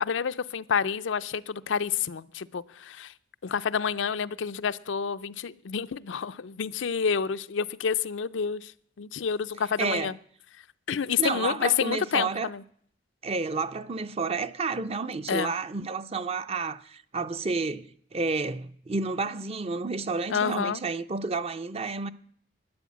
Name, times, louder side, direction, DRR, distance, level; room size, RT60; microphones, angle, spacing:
voice 1, 0.1-3.1 3.4-8.7 9.0-10.1 10.9-12.6 15.3-15.5 20.3-20.8, left 6 dB, 75° left, 0.5 m, -29 dB
voice 2, 9.8-10.1 11.2-12.5 13.2-22.1, right 4 dB, 30° right, 0.6 m, -30 dB
12.0 x 10.0 x 8.4 m
head